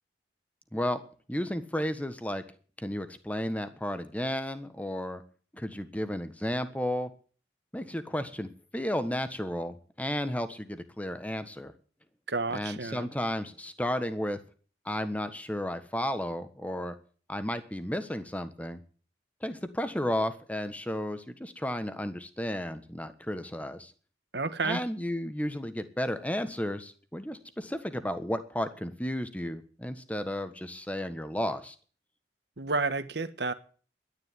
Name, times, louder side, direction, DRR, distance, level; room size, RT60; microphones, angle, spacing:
voice 1, 0.7-1.0 1.3-2.4 2.8-5.2 5.5-7.1 7.7-11.7 12.5-14.4 14.8-16.9 17.3-18.8 19.4-23.9 24.6-31.7, left 1 dB, 10° left, 10 dB, 1.4 m, -33 dB
voice 2, 12.3-13.1 24.3-24.8 32.6-33.5, right 3 dB, 70° right, 11 dB, 1.5 m, -30 dB
12.0 x 10.5 x 9.7 m, 0.42 s
head